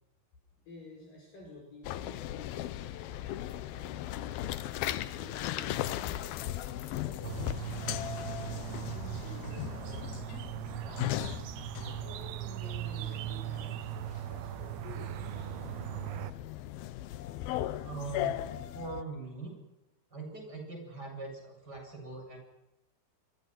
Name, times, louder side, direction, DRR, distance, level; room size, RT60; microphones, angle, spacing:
voice 1, 0.7-4.3 5.0-7.4 7.9-11.2 12.0-15.3, left 2 dB, 60° left, 0 dB, 6.6 m, -52 dB
sound 1, 1.8-19.0, left 13 dB, 75° left, 2.7 m, -38 dB
sound 2, 7.2-16.3, right 13 dB, 90° right, 3.1 m, -39 dB
voice 2, 17.8-19.5 20.1-22.4, right 3 dB, 25° right, 1 dB, 8.5 m, -42 dB
27.0 x 24.0 x 6.1 m, 0.90 s
omnidirectional pair, 4.5 m